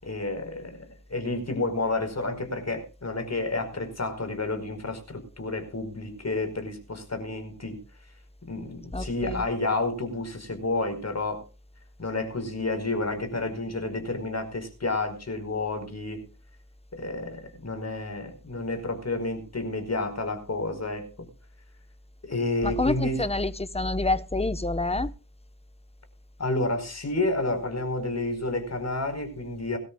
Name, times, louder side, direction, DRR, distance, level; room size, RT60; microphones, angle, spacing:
voice 1, 0.0-0.8 1.1-7.8 8.5-11.4 12.0-16.2 16.9-21.1 22.2-23.2 26.4-29.8, left 2 dB, 45° left, 4.9 m, -30 dB
voice 2, 8.9-9.4 22.6-25.1, left 2 dB, 15° left, 1.1 m, -27 dB
22.5 x 13.0 x 2.4 m
wide cardioid pair, 75°, 35 cm